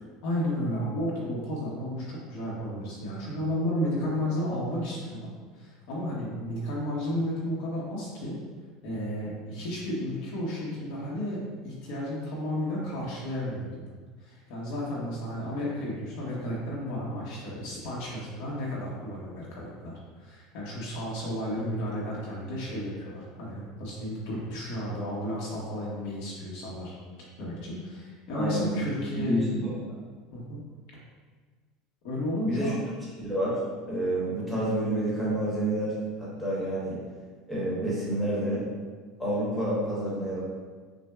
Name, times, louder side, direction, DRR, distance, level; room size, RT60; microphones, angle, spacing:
voice 1, 0.2-8.4 8.8-13.8 14.2-26.9 27.4-29.6 30.3-30.6 32.0-32.8, equal, 65° left, -5 dB, 0.9 m, -33 dB
voice 2, 28.3-28.8 29.2-29.7 32.4-32.7 33.2-33.6 33.9-37.0 37.5-38.6 39.2-40.4, right 1 dB, 5° left, -8 dB, 1.1 m, -29 dB
5.8 x 2.1 x 2.3 m, 1.5 s
cardioid pair, 160°, 0 cm